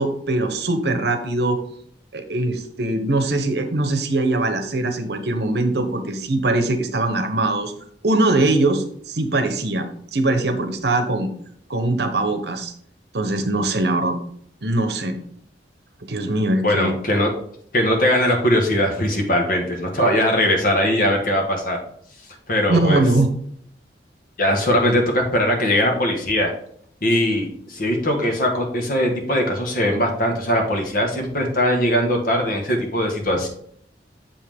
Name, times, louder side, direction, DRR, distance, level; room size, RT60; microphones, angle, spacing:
voice 1, 0.0-1.6 2.1-7.7 8.0-9.8 10.1-11.3 11.7-12.7 13.1-14.2 14.6-15.2 16.0-17.0 22.7-23.3, right 2 dB, 65° right, 7 dB, 0.9 m, -21 dB
voice 2, 16.6-17.3 17.7-21.8 22.5-23.0 24.4-26.5 27.0-33.5, equal, 55° left, 2 dB, 1.5 m, -20 dB
7.1 x 5.5 x 3.5 m, 0.65 s
head